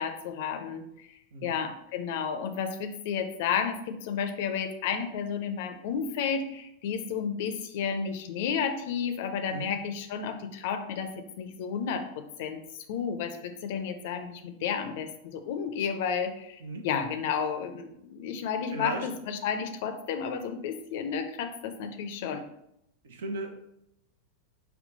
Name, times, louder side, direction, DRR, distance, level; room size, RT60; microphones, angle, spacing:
voice 1, 0.0-12.6 12.9-22.5, left 7 dB, 50° left, 6 dB, 0.6 m, -32 dB
voice 2, 18.7-19.1 23.0-23.5, right 2 dB, 60° right, 4 dB, 0.8 m, -36 dB
5.5 x 2.3 x 3.9 m, 0.80 s
figure-of-eight pair, 90°, 0 cm